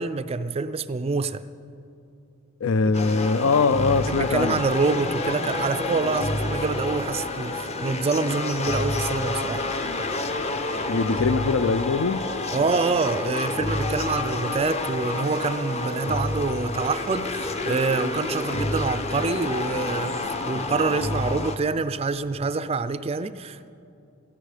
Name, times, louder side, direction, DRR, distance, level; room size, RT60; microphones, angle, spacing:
voice 1, 0.0-1.4 4.1-9.6 12.5-23.7, right 4 dB, 25° right, 0.4 m, -26 dB
voice 2, 2.6-4.6 10.9-12.3, left 4 dB, 70° left, 0.4 m, -22 dB
sound 1, 2.9-21.6, left 2 dB, 30° left, 0.7 m, -29 dB
16.5 x 16.0 x 5.0 m
head